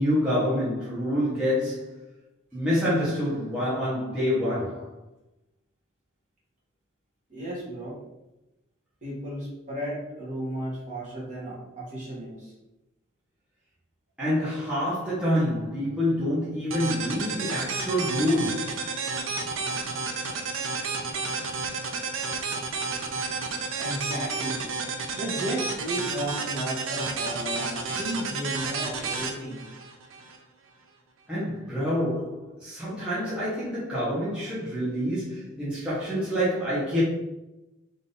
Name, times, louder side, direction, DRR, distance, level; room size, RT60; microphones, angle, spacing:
voice 1, 0.0-2.0 2.5-4.9 14.2-18.8 31.3-37.0, equal, 5° right, -10 dB, 1.2 m, -27 dB
voice 2, 7.3-8.0 9.0-12.5 23.8-24.7 25.1-29.7, equal, 35° right, -6 dB, 1.5 m, -34 dB
sound 1, 16.7-30.4, right 4 dB, 75° right, 0.6 m, -31 dB
3.8 x 2.9 x 4.0 m, 0.96 s
head